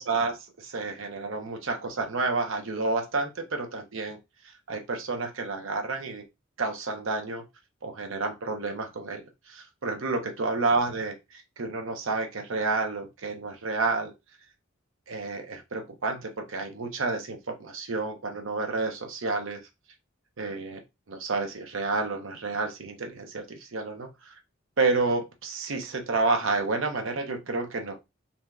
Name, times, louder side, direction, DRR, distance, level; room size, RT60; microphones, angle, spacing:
voice 1, 0.0-4.2 4.7-6.2 6.6-7.4 7.8-14.1 15.1-19.6 20.4-20.8 21.1-24.3 24.8-28.0, right 3 dB, 75° right, 4 dB, 0.7 m, -30 dB
3.3 x 2.7 x 2.3 m, 0.23 s
head